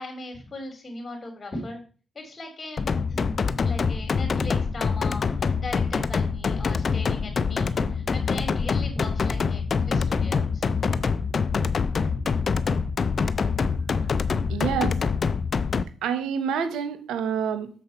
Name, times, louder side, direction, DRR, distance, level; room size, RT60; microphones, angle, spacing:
voice 1, 0.0-1.8 2.1-2.8 3.1-10.7, left 2 dB, 35° left, 4 dB, 3.0 m, -38 dB
sound 1, 2.8-15.8, left 5 dB, 55° left, 0.4 m, -25 dB
voice 2, 14.5-15.0 16.0-17.7, right 7 dB, 90° right, 10 dB, 0.9 m, -27 dB
6.6 x 4.4 x 5.5 m, 0.39 s
cardioid pair, 65°, 0 cm